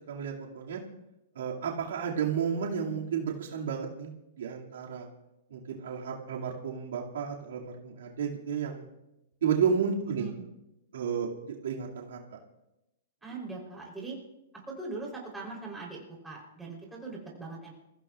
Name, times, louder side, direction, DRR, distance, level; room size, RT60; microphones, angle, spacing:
voice 1, 0.1-0.8 1.4-5.1 5.5-8.8 9.4-10.3 10.9-12.2, right 7 dB, 80° right, -2 dB, 2.3 m, -32 dB
voice 2, 10.1-10.5 13.2-14.2 14.7-17.7, right 3 dB, 5° right, -3 dB, 3.7 m, -41 dB
28.0 x 15.5 x 2.5 m, 0.92 s
hypercardioid pair, 150°, 0 cm